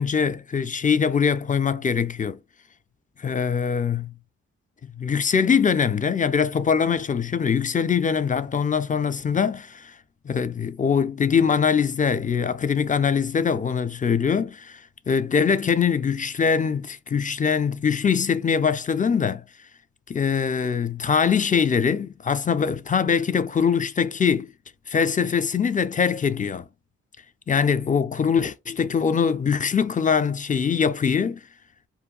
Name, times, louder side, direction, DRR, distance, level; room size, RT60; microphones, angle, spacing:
voice 1, 0.0-2.4 3.2-4.1 5.0-9.9 10.2-14.8 15.1-19.4 20.1-24.5 24.9-26.7 27.5-31.4, left 6 dB, 25° left, 0.4 m, -22 dB
2.8 x 2.2 x 3.7 m
supercardioid pair, 45°, 31 cm